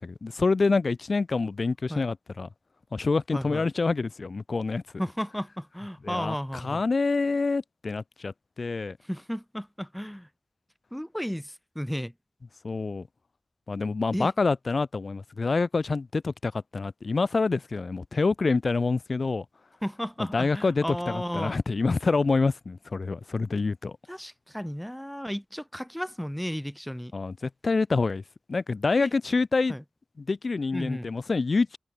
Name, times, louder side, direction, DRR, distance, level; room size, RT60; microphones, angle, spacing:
voice 1, 0.0-2.5 2.9-4.8 6.0-6.3 6.6-9.0 12.6-13.1 13.7-19.4 20.3-24.0 27.1-28.2 28.5-29.7 30.2-31.8, left 4 dB, 75° left, 1.3 m, -26 dB
voice 2, 3.3-3.7 5.0-6.8 9.0-10.3 10.9-12.1 14.1-14.3 19.8-21.6 24.1-27.1 29.0-29.1 29.7-29.8 30.7-31.1, equal, 5° left, 0.8 m, -33 dB
wide cardioid pair, 55°, 0 cm